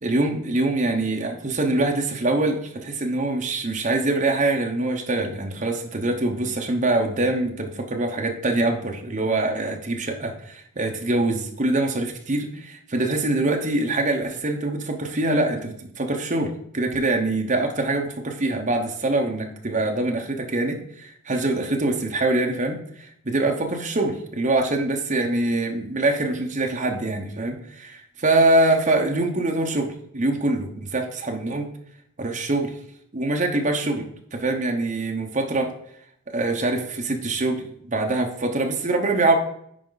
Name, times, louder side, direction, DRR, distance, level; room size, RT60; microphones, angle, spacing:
voice 1, 0.0-31.7 32.2-32.7 33.1-35.7 36.3-39.4, right 2 dB, 35° right, 3 dB, 1.0 m, -24 dB
10.0 x 4.4 x 4.0 m, 0.71 s
head